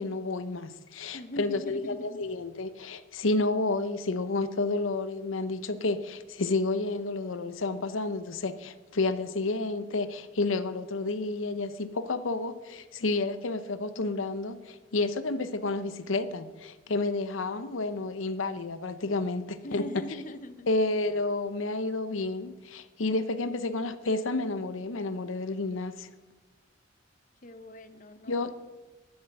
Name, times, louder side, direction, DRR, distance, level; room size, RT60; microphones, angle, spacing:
voice 1, 0.0-19.8 20.7-26.1 28.3-28.5, left 3 dB, 80° left, 12 dB, 0.8 m, -30 dB
voice 2, 1.1-2.2 19.6-20.8 27.4-28.5, left 1 dB, 40° left, 12 dB, 0.8 m, -41 dB
11.5 x 9.1 x 6.6 m, 1.2 s
head